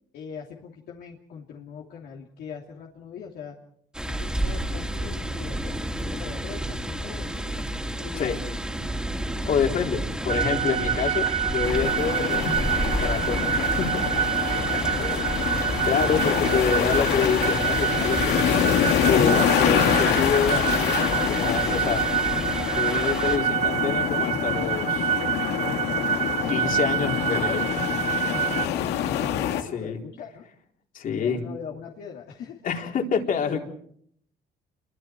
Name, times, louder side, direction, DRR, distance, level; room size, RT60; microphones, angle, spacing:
voice 1, 0.1-3.6 4.1-7.7 8.0-9.0 14.6-15.3 28.3-30.5 31.1-32.7, left 6 dB, 70° left, -1 dB, 2.8 m, -41 dB
sound 1, 3.9-23.4, right 1 dB, 5° right, 3.0 m, -31 dB
voice 2, 9.5-14.0 15.8-18.4 19.0-22.1 22.7-25.2 26.5-27.7 29.6-30.0 30.9-31.4 32.6-33.6, left 6 dB, 55° left, 2 dB, 4.0 m, -27 dB
sound 2, 10.3-28.7, right 9 dB, 40° right, 1.1 m, -27 dB
sound 3, 11.6-29.6, left 9 dB, 85° left, 2.0 m, -26 dB
29.5 x 23.5 x 4.7 m, 0.66 s
cardioid pair, 110°, 17 cm